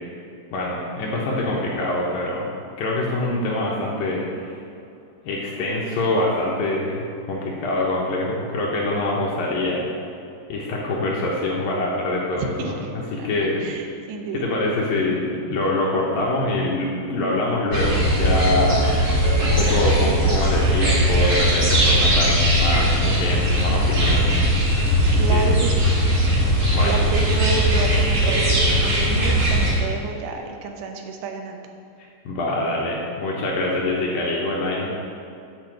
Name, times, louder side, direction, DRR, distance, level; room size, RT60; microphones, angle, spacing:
voice 1, 0.5-2.5 2.8-4.6 5.3-9.9 10.5-13.6 14.3-24.4 25.1-25.5 26.7-27.0 32.3-34.9, left 2 dB, 75° left, -4 dB, 2.2 m, -25 dB
voice 2, 12.4-14.5 19.4-19.6 25.1-25.9 26.8-31.6, right 4 dB, 80° right, 4 dB, 2.9 m, -31 dB
sound 1, 17.7-29.7, equal, 45° right, 1.5 m, -19 dB
9.4 x 4.3 x 7.5 m, 2.6 s
omnidirectional pair, 5.2 m